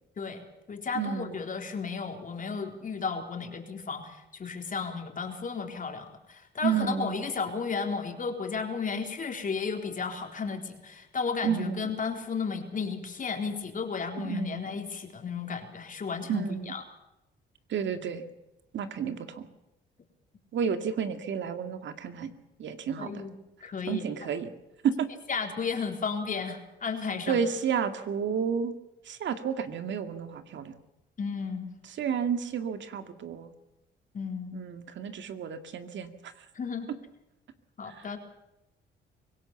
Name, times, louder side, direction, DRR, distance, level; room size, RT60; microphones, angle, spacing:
voice 1, 0.2-16.8 23.0-23.3 23.6-24.0 25.3-27.4 31.2-31.7 34.1-34.7 36.5-36.9 37.8-38.2, left 5 dB, 40° left, 4 dB, 3.9 m, -33 dB
voice 2, 0.9-1.4 6.6-7.2 11.4-11.9 14.2-14.6 16.3-16.7 17.7-18.2 18.7-19.5 20.5-22.3 22.6-23.2 23.9-24.5 24.8-25.1 27.3-28.8 29.0-30.8 32.0-33.5 34.5-36.3 37.9-38.1, right 7 dB, 65° right, 8 dB, 2.2 m, -31 dB
24.5 x 17.5 x 7.2 m, 0.92 s
cardioid pair, 90°, 20 cm